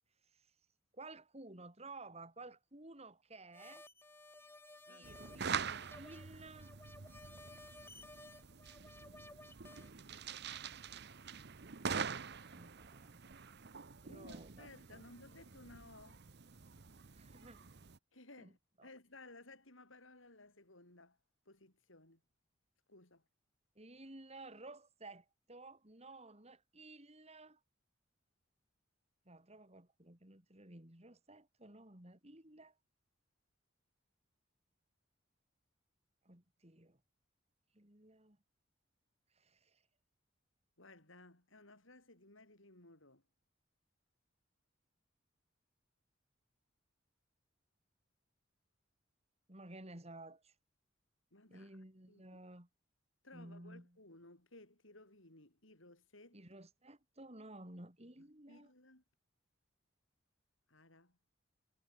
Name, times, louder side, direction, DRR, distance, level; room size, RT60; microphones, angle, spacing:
voice 1, 0.9-3.8 4.9-6.7 11.8-13.2 14.0-15.0 17.1-17.7 18.4-18.5 18.8-18.9 23.7-27.6 29.2-32.7 36.2-37.0 37.7-38.4 39.3-39.8 49.5-50.5 51.5-52.7 53.3-54.0 56.3-58.7, right 2 dB, 30° right, 3.5 m, -54 dB
sound 1, 3.5-9.9, left 2 dB, 10° left, 3.4 m, -57 dB
sound 2, 5.0-18.0, right 6 dB, 55° right, 0.9 m, -45 dB
voice 2, 14.1-16.2 18.1-21.2 21.5-22.2 22.9-23.2 40.8-43.2 51.3-51.7 52.1-52.4 53.2-56.4 58.2-59.0 60.7-61.2, left 2 dB, 75° left, 7.8 m, -59 dB
head